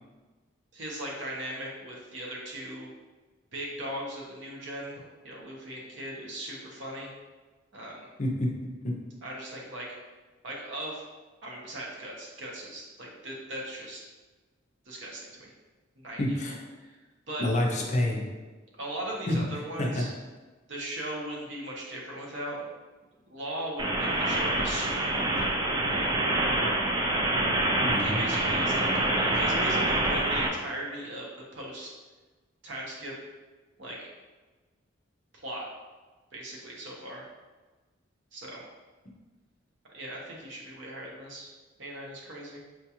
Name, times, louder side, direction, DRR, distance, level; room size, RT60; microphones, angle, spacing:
voice 1, 0.7-2.9 3.5-7.1 7.7-8.1 9.2-9.9 10.4-11.0 11.4-14.0 14.9-15.5 16.0-16.4 16.8-17.0 17.3-17.4 18.8-20.1 20.7-22.7 23.3-25.6 25.9-26.1 28.0-32.0 32.6-33.1 33.8-34.0 35.4-35.6 36.3-37.3 38.3-38.6 39.9-41.5 41.8-42.6, right 1 dB, 60° right, -3 dB, 0.8 m, -38 dB
voice 2, 8.2-8.5 8.8-8.9 16.2-16.6 17.4-18.2 19.3-19.4 19.8-20.0 27.8-28.5, left 1 dB, 35° left, -1 dB, 0.5 m, -28 dB
sound 1, 23.8-30.5, right 1 dB, 20° right, 0.3 m, -26 dB
4.4 x 2.3 x 2.8 m, 1.3 s
head